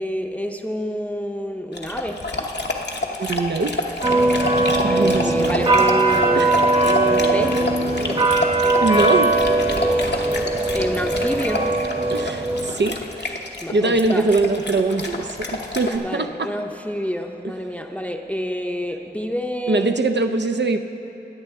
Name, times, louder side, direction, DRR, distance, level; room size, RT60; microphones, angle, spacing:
voice 1, 0.0-2.3 4.9-7.7 10.7-11.7 13.6-14.3 16.0-19.9, equal, 10° left, 3 dB, 0.6 m, -28 dB
Dog, 1.7-16.0, left 2 dB, 80° left, 0.9 m, -29 dB
voice 2, 3.2-4.0 4.8-5.7 6.3-6.5 8.8-9.4 12.1-16.5 19.7-20.8, right 3 dB, 80° right, 6 dB, 0.5 m, -23 dB
sound 1, 4.0-12.7, right 2 dB, 35° right, 1.0 m, -20 dB
20.5 x 8.5 x 3.5 m, 2.9 s
wide cardioid pair, 45°, 18 cm